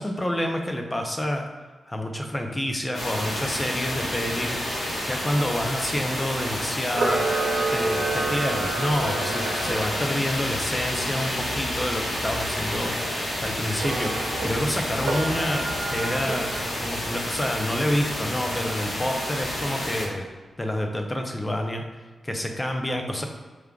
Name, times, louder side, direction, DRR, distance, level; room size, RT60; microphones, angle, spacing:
voice 1, 0.0-1.4 1.9-4.8 5.1-16.5 16.8-20.3 20.6-21.8 22.2-23.2, left 1 dB, 15° left, 3 dB, 0.5 m, -28 dB
sound 1, 2.9-20.1, left 1 dB, 85° left, 1.2 m, -30 dB
Camera, 6.9-10.2 13.7-14.5 15.0-16.8, right 2 dB, 85° right, 0.8 m, -29 dB
4.7 x 3.6 x 2.3 m, 1.3 s
wide cardioid pair, 115°, 0 cm